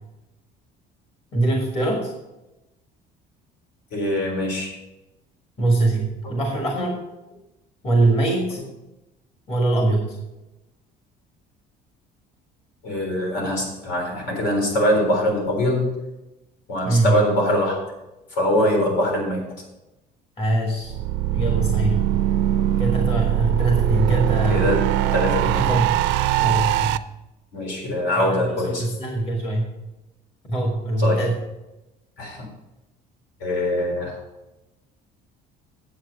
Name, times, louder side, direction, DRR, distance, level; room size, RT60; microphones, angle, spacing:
voice 1, 1.3-2.1 5.6-7.0 7.8-8.6 9.5-10.2 16.8-17.1 20.4-20.9 21.3-22.1 22.8-24.7 25.4-26.0 26.4-27.0 28.2-29.6 30.4-31.3, right 2 dB, 30° left, 1 dB, 1.5 m, -22 dB
voice 2, 3.9-4.7 6.2-6.4 8.3-8.4 12.8-15.9 16.7-17.8 18.3-19.4 24.5-24.8 25.1-25.6 27.5-28.9 31.0-31.2 32.2-32.5 33.4-34.2, left 1 dB, 75° left, 0 dB, 4.0 m, -23 dB
sound 1, 20.8-27.0, right 13 dB, 80° right, 0.5 m, -21 dB
9.0 x 7.9 x 5.3 m, 0.98 s
cardioid pair, 175°, 18 cm